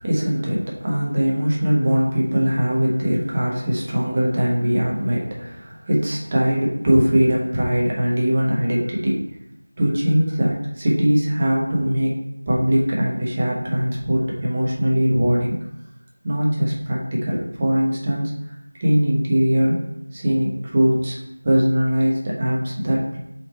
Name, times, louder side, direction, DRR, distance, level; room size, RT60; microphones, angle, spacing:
voice 1, 0.0-9.2 9.8-12.2 12.5-15.6 16.2-18.3 18.8-19.8 20.1-21.2 21.4-23.2, equal, 20° right, -3 dB, 1.2 m, -21 dB
5.8 x 5.0 x 4.3 m, 0.84 s
figure-of-eight pair, 170°, 0 cm